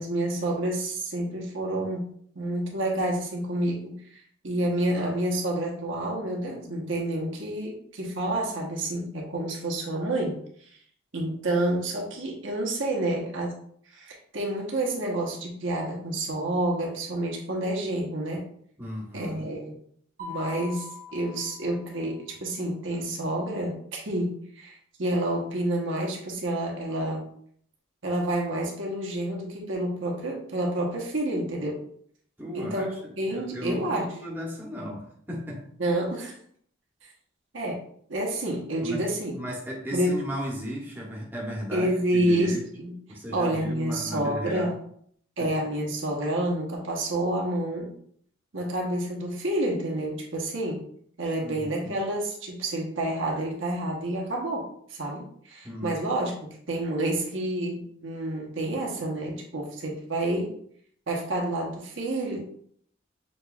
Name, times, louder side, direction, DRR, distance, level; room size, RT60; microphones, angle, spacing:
voice 1, 0.0-2.1 2.3-10.4 11.1-13.5 13.9-18.4 19.1-19.7 20.2-27.2 28.0-31.8 32.5-32.9 33.2-34.1 35.8-36.3 37.5-37.8 38.1-39.3 39.9-40.2 41.7-42.9 43.3-44.8 45.4-47.9 48.5-50.8 51.2-60.5 61.1-62.4, right 1 dB, 75° right, -1 dB, 1.1 m, -29 dB
voice 2, 18.8-19.5 32.4-35.6 38.8-39.1 39.3-42.6 43.1-44.7 45.4-45.5 51.4-51.9 55.6-56.0, equal, 10° right, -3 dB, 0.9 m, -35 dB
Mallet percussion, 20.2-22.3, left 5 dB, 40° right, 0.7 m, -42 dB
6.5 x 3.1 x 2.3 m, 0.63 s
head